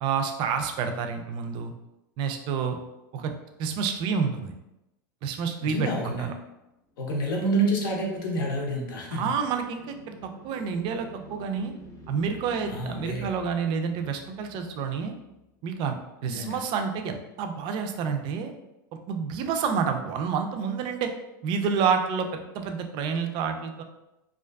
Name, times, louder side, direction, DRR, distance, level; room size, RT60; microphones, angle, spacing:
voice 1, 0.0-1.7 2.2-2.8 3.1-3.3 3.6-4.5 5.2-6.3 9.1-10.0 10.2-11.7 12.1-15.1 15.6-16.0 16.2-18.5 18.9-21.1 21.4-23.8, right 6 dB, 45° right, 6 dB, 0.3 m, -29 dB
voice 2, 5.6-6.3 7.0-9.3 12.7-13.3 16.2-16.6, right 1 dB, 75° left, 0 dB, 0.7 m, -28 dB
sound 1, 6.7-15.9, left 1 dB, 25° left, 0.6 m, -50 dB
2.4 x 2.3 x 2.2 m, 0.92 s
hypercardioid pair, 105°, 11 cm